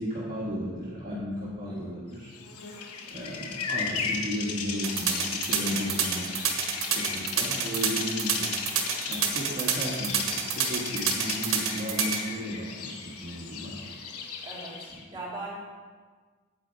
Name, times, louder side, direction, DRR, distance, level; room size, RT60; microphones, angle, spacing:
voice 1, 0.0-2.3 3.1-6.3 6.8-8.5 9.1-13.7, equal, 40° right, -7 dB, 1.6 m, -34 dB
voice 2, 1.6-2.0 5.8-6.2 7.0-7.4 14.4-15.7, right 1 dB, 20° right, -6 dB, 3.3 m, -41 dB
Bird vocalization bird call bird song, 2.4-15.0, left 5 dB, 85° left, 1.1 m, -36 dB
sound 1, 4.8-12.2, right 7 dB, 65° right, 1.3 m, -27 dB
8.9 x 8.5 x 4.6 m, 1.5 s
head